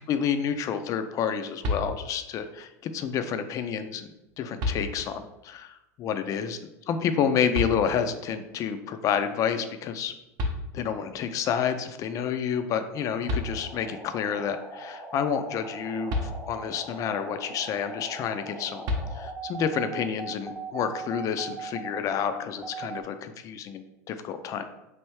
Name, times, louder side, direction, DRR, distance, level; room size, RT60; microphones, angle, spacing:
voice 1, 0.0-4.1 4.4-6.6 6.9-10.1 10.7-18.8 19.1-24.6, left 7 dB, 40° left, 9 dB, 0.3 m, -29 dB
sound 1, 1.6-2.4 3.9-4.0 4.6-5.3 7.5-8.3 10.0-10.1 10.4-11.2 12.9-13.0 13.3-14.0 16.1-16.9 18.8-19.6, left 2 dB, 50° right, 0.6 m, -32 dB
sound 2, 13.2-23.0, right 3 dB, 10° right, 0.6 m, -40 dB
3.2 x 2.6 x 3.1 m, 0.92 s
hypercardioid pair, 100°, 9 cm